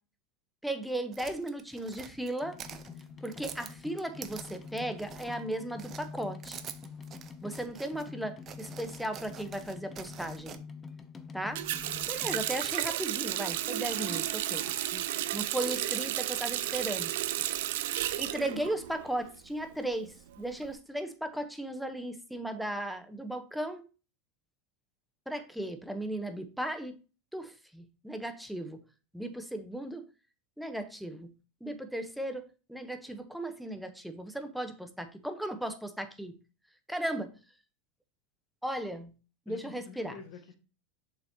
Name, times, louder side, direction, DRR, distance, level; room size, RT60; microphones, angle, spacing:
voice 1, 0.6-2.6 3.2-6.6 7.4-10.6 11.3-11.6 12.1-14.7 15.3-17.1 18.2-23.8 25.3-27.0 27.3-28.8 29.1-30.0 30.6-31.3 31.6-36.3 36.9-37.3 38.6-39.1 39.5-40.1, right 1 dB, ahead, 8 dB, 1.0 m, -36 dB
sound 1, 1.1-5.5 5.8-8.1 8.4-10.6, right 8 dB, 35° right, 0.7 m, -47 dB
sound 2, 2.4-12.7 13.6-15.7 16.0-16.9 17.4-17.5 17.7-17.8 18.0-18.1 18.6-18.7 18.9-19.0, left 5 dB, 20° left, 0.7 m, -47 dB
Water tap faucet, 11.6-19.3 19.6-20.7, right 13 dB, 75° right, 0.6 m, -33 dB
voice 2, 14.0-14.3 14.7-15.1 17.0-17.5 39.5-40.6, left 6 dB, 55° left, 5 dB, 1.6 m, -50 dB
7.0 x 5.6 x 2.9 m, 0.34 s
supercardioid pair, 125°, 0 cm